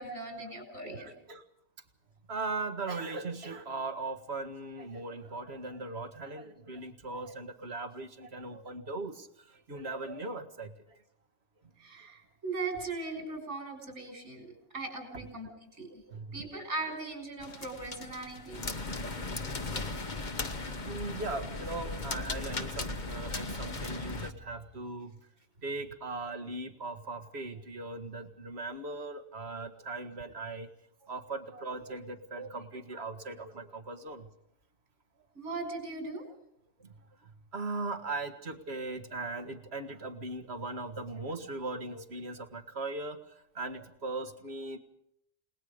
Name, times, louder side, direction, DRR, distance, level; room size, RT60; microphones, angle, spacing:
voice 1, 0.0-1.1 11.8-15.5 15.8-15.9 16.3-18.7 35.3-36.2, right 3 dB, 75° right, 3 dB, 6.3 m, -39 dB
voice 2, 0.8-1.4 2.3-11.0 14.1-14.2 15.1-15.3 15.9-16.6 19.0-19.6 20.8-25.2 25.6-30.7 31.1-34.3 36.8-36.9 37.2-44.8, right 3 dB, 60° right, 8 dB, 2.1 m, -39 dB
sound 1, 17.4-24.3, left 3 dB, 40° left, 1.4 m, -37 dB
30.0 x 19.5 x 5.2 m, 0.75 s
omnidirectional pair, 1.3 m